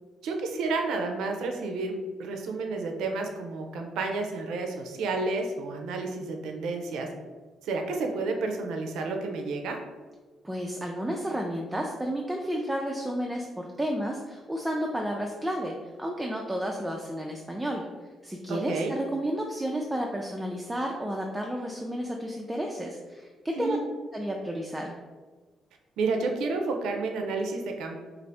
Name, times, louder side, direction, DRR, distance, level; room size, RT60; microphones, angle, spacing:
voice 1, 0.2-7.1 7.6-9.8 18.5-18.9 23.6-23.8 26.0-28.0, right 3 dB, 85° right, 3 dB, 0.4 m, -30 dB
voice 2, 10.4-17.9 18.2-23.8 24.1-24.9, equal, 10° right, 0 dB, 0.3 m, -31 dB
2.6 x 2.4 x 3.3 m, 1.3 s
cardioid pair, 90°, 0 cm